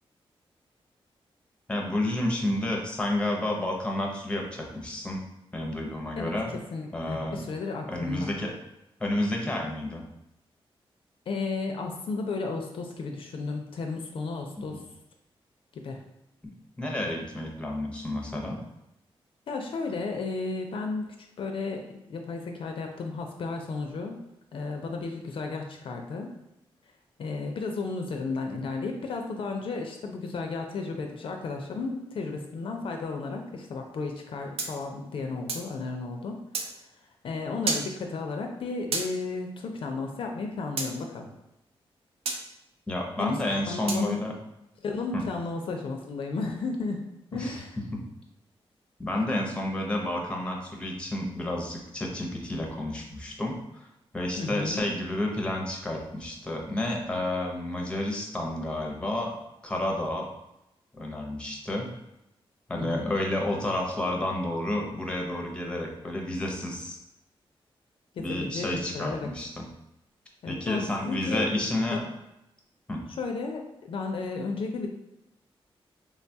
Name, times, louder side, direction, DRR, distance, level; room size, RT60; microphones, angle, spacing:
voice 1, 1.7-5.2 5.5-6.5 6.9-7.4 7.9-8.5 9.0-10.0 16.4-16.5 16.8-18.6 42.9-44.3 45.1-45.3 47.3-47.6 47.9-48.0 49.0-53.9 54.1-59.3 59.6-60.3 60.9-61.9 62.7-67.0 68.2-69.7 70.5-72.0 72.9-73.0, left 1 dB, 10° left, 0 dB, 0.6 m, -30 dB
voice 2, 6.7-8.3 11.3-14.8 15.7-16.0 19.5-21.1 21.4-24.2 24.5-26.3 27.2-36.4 37.2-41.3 43.2-43.4 43.7-44.2 44.8-47.0 47.3-47.7 54.4-54.9 62.7-63.1 68.1-69.3 70.4-72.0 73.2-74.9, left 3 dB, 65° left, 3 dB, 0.4 m, -33 dB
sound 1, 34.6-35.7 36.5-36.7 37.7-37.9 38.9-39.1 40.8-40.9 42.3-42.4 43.9-44.1, right 4 dB, 85° right, 0.4 m, -30 dB
3.5 x 2.2 x 2.6 m, 0.87 s
wide cardioid pair, 110°, 10 cm